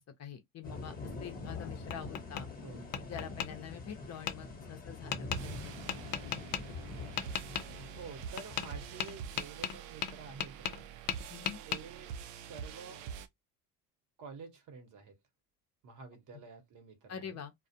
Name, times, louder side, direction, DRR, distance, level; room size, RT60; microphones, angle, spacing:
voice 1, 0.2-2.5 3.1-5.8 11.3-11.6 17.1-17.5, left 8 dB, 40° left, 0.6 m, -45 dB
sound 1, 0.6-9.5, left 3 dB, 25° left, 1.0 m, -45 dB
Tap, 1.4-2.5 2.9-3.5 4.3-4.4 5.1-5.4 5.9-6.6 7.2-7.7 8.4-8.7 9.0-10.8 11.1-11.8, left 10 dB, 90° left, 0.5 m, -36 dB
voice 2, 2.6-3.1 8.0-10.9 11.6-13.0 14.2-15.2 15.8-17.4, right 5 dB, 50° right, 1.0 m, -50 dB
sound 2, 5.3-13.3, right 7 dB, 80° right, 0.5 m, -46 dB
2.3 x 2.1 x 2.7 m
supercardioid pair, 90°, 40 cm